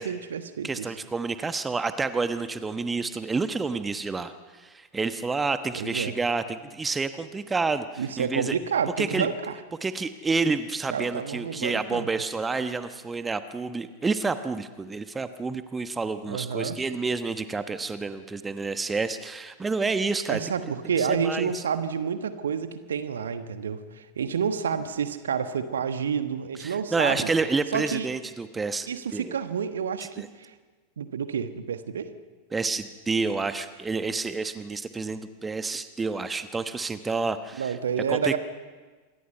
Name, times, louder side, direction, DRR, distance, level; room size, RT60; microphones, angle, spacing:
voice 1, 0.0-0.9 5.7-6.1 8.0-9.6 10.9-12.1 16.3-16.8 20.3-27.3 27.7-28.1 28.9-30.5 31.0-32.1 37.6-38.4, right 7 dB, 65° right, 10 dB, 1.3 m, -29 dB
voice 2, 0.6-8.6 9.0-9.3 9.8-20.4 21.0-21.6 26.6-29.4 30.2-30.3 32.5-37.7 38.1-38.4, right 4 dB, 15° right, 10 dB, 1.1 m, -29 dB
27.5 x 22.5 x 5.6 m, 1.4 s
figure-of-eight pair, 90°, 0 cm